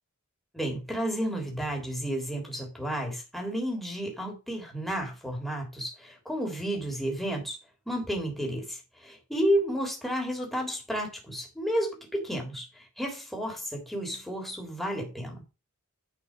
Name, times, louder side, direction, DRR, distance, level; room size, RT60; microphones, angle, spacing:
voice 1, 0.5-7.6 7.8-15.4, equal, ahead, 3.4 m, -32 dB
11.0 x 5.2 x 5.3 m
head